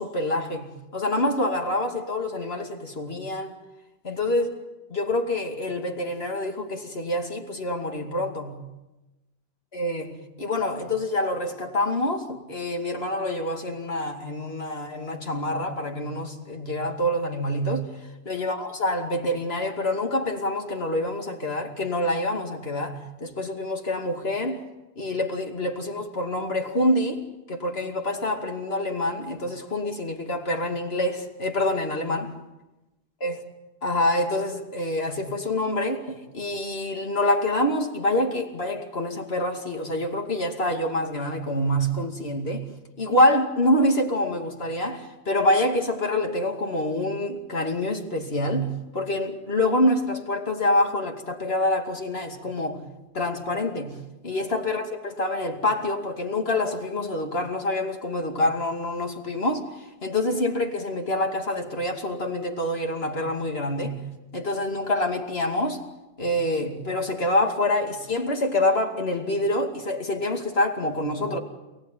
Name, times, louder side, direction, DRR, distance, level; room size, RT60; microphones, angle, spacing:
voice 1, 0.0-3.5 4.0-4.5 4.9-8.6 9.7-17.9 18.2-24.6 25.0-32.3 33.2-33.4 33.8-42.7 43.0-52.8 53.1-64.0 64.3-65.8 66.2-71.4, left 1 dB, 65° left, 2.8 m, -26 dB
29.0 x 18.5 x 9.2 m
omnidirectional pair, 1.1 m